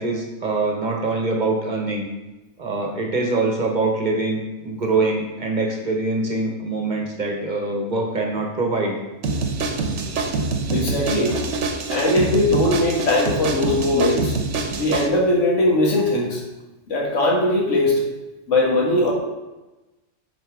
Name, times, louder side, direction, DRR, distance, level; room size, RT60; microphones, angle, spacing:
voice 1, 0.0-2.0 2.6-9.0, right 3 dB, 40° right, 1 dB, 1.0 m, -24 dB
sound 1, 9.2-15.1, right 3 dB, 70° right, 1.1 m, -25 dB
voice 2, 10.7-11.5 11.9-14.4 14.7-16.4 16.9-18.0 18.5-19.1, left 1 dB, 70° left, -2 dB, 1.8 m, -20 dB
9.5 x 4.2 x 3.5 m, 1.1 s
omnidirectional pair, 1.3 m